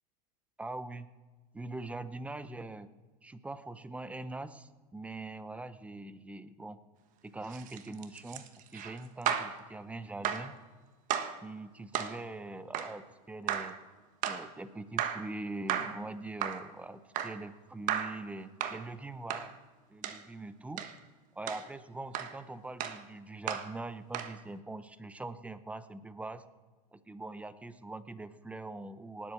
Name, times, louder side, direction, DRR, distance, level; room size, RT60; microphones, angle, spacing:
voice 1, 0.6-1.1 1.5-2.9 3.2-6.8 7.2-10.6 11.4-13.8 14.3-19.5 19.9-20.8 21.3-26.4 26.9-29.3, right 2 dB, 5° right, 14 dB, 0.7 m, -43 dB
sound 1, 7.4-9.6 10.2-10.5 11.1-11.4 11.9-12.2 12.7-13.0 13.5-13.8 14.2-14.5 15.0-15.3 15.7-16.0 16.4-16.7 17.2-17.4 17.9-18.2 18.6-18.8 19.3-19.5 20.0-20.2 20.8-21.0 21.5-21.7 22.1-22.4 22.8-23.0 23.5-23.7 24.1-24.4, right 9 dB, 40° right, 1.3 m, -34 dB
18.5 x 7.9 x 7.0 m, 1.4 s
supercardioid pair, 130°, 20 cm